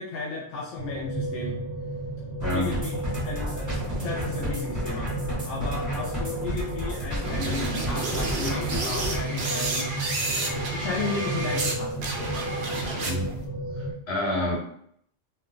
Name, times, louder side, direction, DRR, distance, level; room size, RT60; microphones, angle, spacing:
voice 1, 0.0-1.6 2.5-3.0 3.2-5.1 5.4-9.9 10.7-12.1, left 4 dB, 85° left, -3 dB, 0.9 m, -34 dB
sound 1, 0.8-13.9, right 1 dB, 40° left, 0.9 m, -33 dB
voice 2, 2.4-2.7 13.0-13.4 13.8-14.6, left 1 dB, 65° left, -4 dB, 1.4 m, -28 dB
sound 2, 2.4-9.2, equal, 15° right, 1.3 m, -32 dB
sound 3, 7.2-11.7 12.0-13.4, right 2 dB, 65° right, 0.8 m, -30 dB
2.6 x 2.2 x 3.7 m, 0.67 s
omnidirectional pair, 1.2 m